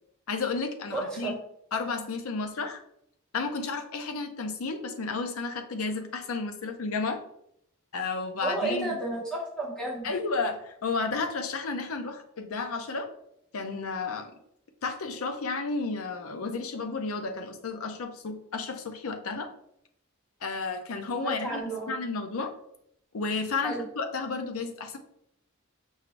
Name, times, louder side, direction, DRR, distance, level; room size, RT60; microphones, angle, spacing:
voice 1, 0.3-1.4 1.7-2.8 3.3-7.2 7.9-9.0 10.0-13.1 13.5-14.3 14.8-19.5 20.4-21.6 21.9-22.5 23.1-25.0, left 4 dB, 90° left, 7 dB, 0.6 m, -32 dB
voice 2, 0.9-1.3 8.4-10.1 21.2-22.0 23.6-23.8, right 2 dB, 5° left, -3 dB, 1.1 m, -32 dB
5.5 x 2.5 x 3.1 m, 0.73 s
head